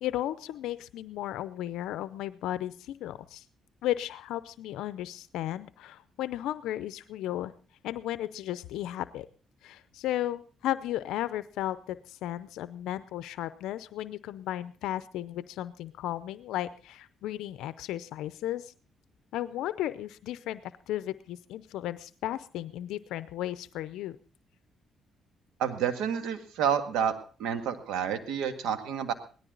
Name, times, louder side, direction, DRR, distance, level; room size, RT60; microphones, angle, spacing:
voice 1, 0.0-3.4 3.8-7.5 7.8-9.3 9.6-18.7 19.3-24.2, left 13 dB, 90° left, 15 dB, 0.6 m, -34 dB
voice 2, 25.6-27.1 27.4-29.1, right 8 dB, 90° right, 9 dB, 1.9 m, -29 dB
18.0 x 13.0 x 3.9 m, 0.38 s
cardioid pair, 90°, 0 cm